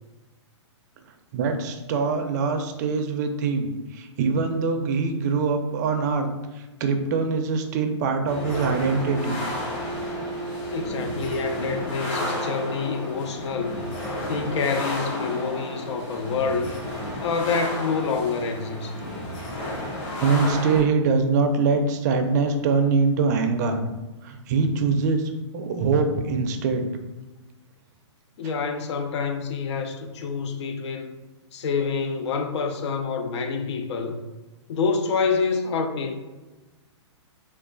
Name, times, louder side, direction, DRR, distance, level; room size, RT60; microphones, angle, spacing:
voice 1, 1.3-6.3 6.6-9.3 20.2-23.8 24.2-26.8, right 4 dB, 35° right, 0.4 m, -23 dB
sound 1, 8.3-20.8, equal, 30° left, 1.2 m, -32 dB
voice 2, 10.7-13.8 14.3-16.7 17.2-19.0 28.4-31.1 31.5-34.2 34.7-36.2, left 5 dB, 70° left, 0.4 m, -27 dB
3.0 x 2.3 x 3.8 m
hypercardioid pair, 150°, 15 cm